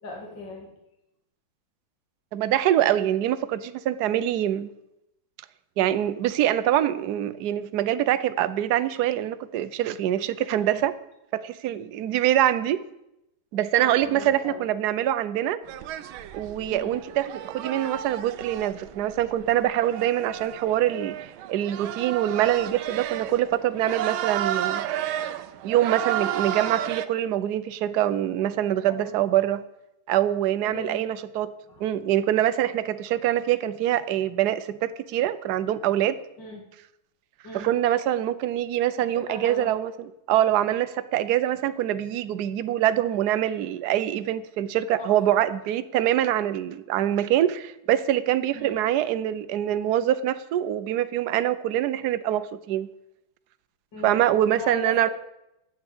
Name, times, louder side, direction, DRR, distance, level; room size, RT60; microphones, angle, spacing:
voice 1, 0.0-0.7 10.6-10.8 13.7-14.6 16.7-17.0 28.9-29.1 30.6-31.1 31.7-31.8 36.4-36.6 37.4-37.8 39.1-39.7 45.0-45.4 48.5-48.8 53.9-55.1, left 2 dB, 60° left, 1 dB, 3.1 m, -39 dB
voice 2, 2.3-4.7 5.8-10.9 11.3-12.8 13.5-15.6 16.3-24.8 25.6-29.6 30.1-31.5 31.8-36.2 37.5-52.9 54.0-55.1, right 12 dB, 65° right, 14 dB, 1.1 m, -24 dB
sound 1, 15.7-27.1, right 12 dB, 85° right, 1.5 m, -32 dB
9.5 x 8.2 x 8.6 m, 0.85 s
omnidirectional pair, 2.2 m